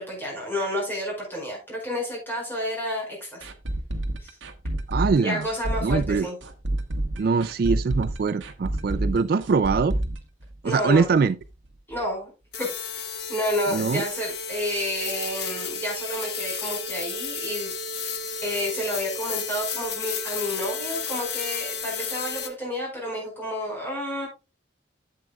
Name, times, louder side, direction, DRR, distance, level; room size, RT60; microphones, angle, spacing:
voice 1, 0.0-3.5 4.2-4.3 5.2-6.4 10.6-11.1 11.9-12.3 12.6-12.7 12.9-17.7 18.4-24.3, left 1 dB, 10° left, 4.9 m, -30 dB
sound 1, 3.4-11.2 11.4-11.5 11.9-12.0, right 1 dB, 75° right, 1.1 m, -29 dB
voice 2, 4.9-5.5 5.8-6.3 7.2-10.0 10.6-11.3 13.7-14.0, right 5 dB, 50° right, 0.3 m, -23 dB
sound 2, 12.5-22.5, left 5 dB, 55° left, 1.2 m, -32 dB
12.0 x 7.5 x 2.3 m
head